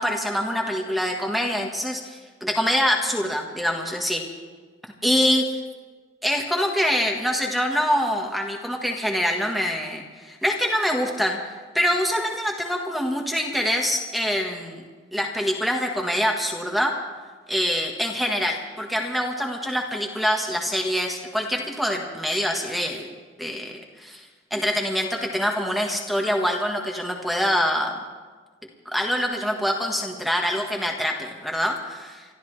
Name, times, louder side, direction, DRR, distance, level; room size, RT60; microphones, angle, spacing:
voice 1, 0.0-4.2 5.0-5.4 6.2-11.4 11.7-14.8 15.1-16.9 17.5-23.1 23.4-28.0 28.8-32.2, equal, ahead, 1 dB, 1.4 m, -25 dB
29.5 x 13.5 x 3.3 m, 1.5 s
head